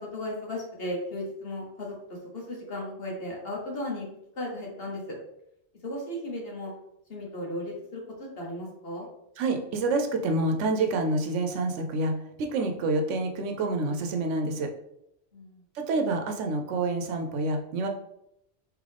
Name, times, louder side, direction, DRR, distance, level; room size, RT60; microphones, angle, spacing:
voice 1, 0.0-4.1 4.3-5.2 5.8-6.7 7.1-9.1 15.3-15.6, left 1 dB, 55° left, -2 dB, 1.3 m, -35 dB
voice 2, 9.4-14.7 15.7-17.9, right 2 dB, 85° right, 4 dB, 1.0 m, -27 dB
3.7 x 3.1 x 3.3 m, 0.80 s
omnidirectional pair, 1.2 m